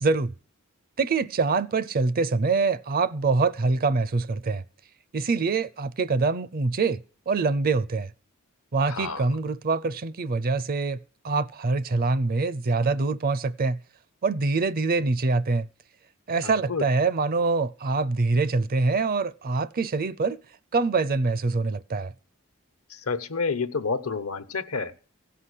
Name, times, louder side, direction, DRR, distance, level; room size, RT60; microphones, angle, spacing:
voice 1, 0.0-0.3 1.0-4.6 5.1-8.1 8.7-11.0 11.2-13.8 14.2-15.7 16.3-20.4 20.7-22.1, right 3 dB, 45° right, 0.5 m, -24 dB
voice 2, 8.9-9.3 16.4-16.8 22.9-24.9, left 4 dB, 80° left, 1.0 m, -29 dB
16.0 x 5.8 x 8.2 m
head